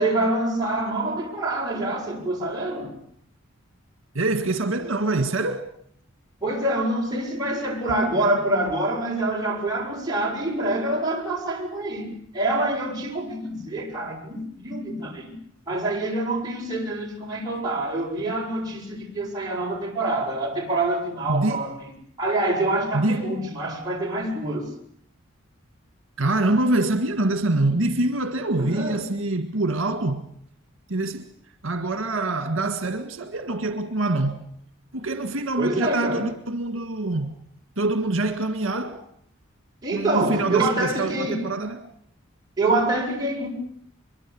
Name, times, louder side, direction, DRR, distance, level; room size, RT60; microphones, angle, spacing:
voice 1, 0.0-2.9 6.4-12.1 12.3-15.3 15.7-21.7 22.2-24.7 28.5-29.0 35.6-36.3 39.8-41.4 42.6-43.5, right 2 dB, 20° right, 7.3 m, -26 dB
voice 2, 4.1-5.7 21.3-21.6 22.9-23.4 26.2-30.3 30.9-31.3 31.6-34.4 34.9-37.3 37.8-39.1 39.9-41.9, right 2 dB, 75° right, 1.9 m, -25 dB
24.0 x 23.5 x 8.7 m
head